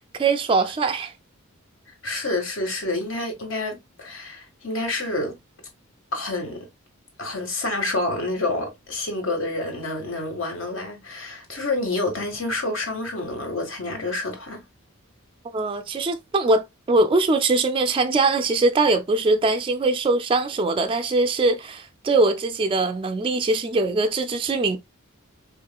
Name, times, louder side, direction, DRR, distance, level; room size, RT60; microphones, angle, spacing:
voice 1, 0.2-1.1 15.5-24.8, right 3 dB, 25° right, 0.3 m, -22 dB
voice 2, 2.0-5.3 6.1-6.6 7.2-14.6, left 2 dB, 60° left, 1.5 m, -28 dB
4.6 x 3.1 x 2.2 m
head